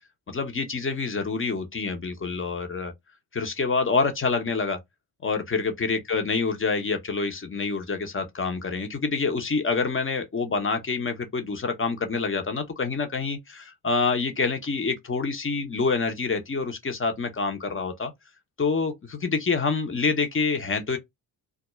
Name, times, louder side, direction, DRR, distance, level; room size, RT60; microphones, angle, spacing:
voice 1, 0.3-2.9 3.3-4.8 5.2-18.1 18.6-21.0, left 4 dB, 25° left, 0.8 m, -27 dB
2.4 x 2.1 x 3.0 m
supercardioid pair, 50°, 50 cm